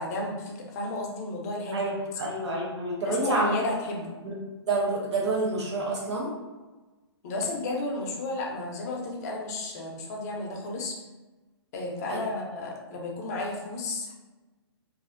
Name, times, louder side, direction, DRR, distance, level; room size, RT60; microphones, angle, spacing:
voice 1, 0.0-1.9 2.2-2.3 3.0-4.1 7.2-11.0 11.7-14.1, left 2 dB, 35° left, -1 dB, 0.5 m, -32 dB
voice 2, 1.7-3.5 4.2-4.3 4.7-6.3 12.1-12.2, right 2 dB, 80° right, -3 dB, 0.9 m, -28 dB
2.4 x 2.1 x 2.5 m, 1.2 s
hypercardioid pair, 150°, 14 cm